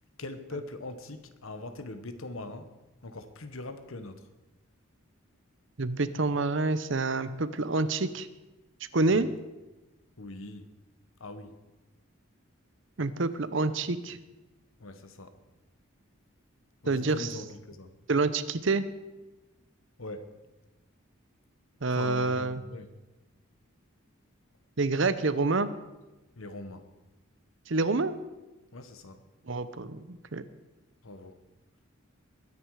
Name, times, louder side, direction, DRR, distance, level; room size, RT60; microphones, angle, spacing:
voice 1, 0.2-2.7 3.0-4.3 9.1-9.3 10.2-10.7 11.2-11.6 14.8-15.3 16.8-17.9 20.0-20.3 21.9-22.9 26.4-26.8 28.7-29.2 31.0-31.3, left 2 dB, 80° left, 9 dB, 1.3 m, -41 dB
voice 2, 5.8-8.3 8.9-9.3 13.0-14.2 16.9-17.3 18.1-18.8 21.8-22.6 24.8-25.7 27.7-28.1 29.5-30.4, right 3 dB, 60° right, 13 dB, 0.8 m, -27 dB
21.5 x 9.7 x 4.9 m, 1.1 s
head